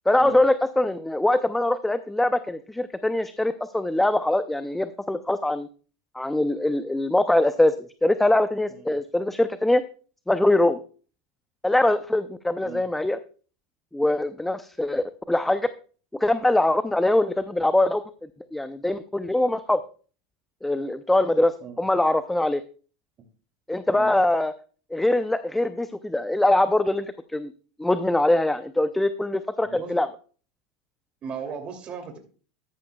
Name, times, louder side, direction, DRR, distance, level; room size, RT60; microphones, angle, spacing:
voice 1, 0.1-5.7 6.1-9.8 10.3-10.8 11.6-13.2 13.9-15.7 16.2-18.0 18.5-19.8 20.6-22.6 23.7-24.5 24.9-27.5 27.8-30.1, left 1 dB, 5° left, 12 dB, 0.6 m, -23 dB
voice 2, 29.7-30.0 31.2-32.2, right 6 dB, 35° right, 5 dB, 2.7 m, -37 dB
14.0 x 11.0 x 2.3 m, 0.38 s
supercardioid pair, 115°, 3 cm